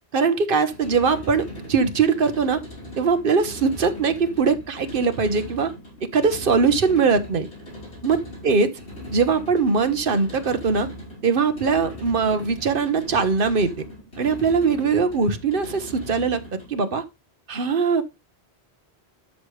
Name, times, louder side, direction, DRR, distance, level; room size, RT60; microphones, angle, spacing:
voice 1, 0.1-2.6 3.0-5.7 6.0-7.5 8.0-8.2 8.4-8.7 9.1-10.9 11.2-13.7 14.2-17.0 17.5-18.0, right 5 dB, 55° right, 1.1 m, -21 dB
sound 1, 0.6-16.8, left 1 dB, 85° left, 5.4 m, -39 dB
12.5 x 5.1 x 3.2 m
omnidirectional pair, 1.1 m